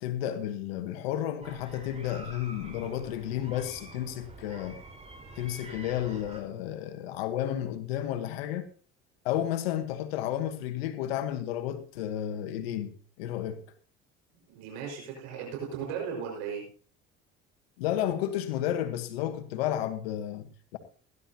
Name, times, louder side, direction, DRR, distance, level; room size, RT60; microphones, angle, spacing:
voice 1, 0.0-4.8 5.3-8.7 9.2-13.6 17.8-20.8, left 11 dB, 90° left, 1.3 m, -32 dB
sound 1, 1.4-6.4, right 2 dB, 20° right, 4.4 m, -47 dB
voice 2, 14.5-16.6, right 7 dB, 80° right, 5.2 m, -36 dB
18.0 x 11.0 x 2.8 m
supercardioid pair, 80°, 30 cm